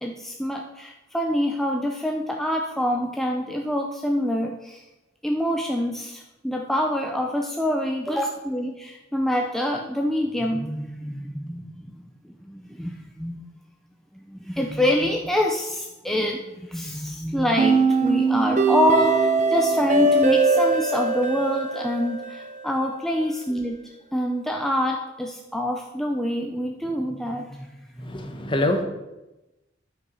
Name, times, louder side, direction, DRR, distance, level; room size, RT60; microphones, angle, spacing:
voice 1, 0.0-4.9 5.2-13.5 14.1-23.8 24.1-28.3, left 1 dB, ahead, 1 dB, 0.6 m, -26 dB
sound 1, 17.6-22.6, right 3 dB, 40° right, 0.9 m, -21 dB
voice 2, 28.1-28.8, left 1 dB, 25° left, 5 dB, 1.1 m, -24 dB
9.7 x 5.6 x 5.4 m, 1.0 s
head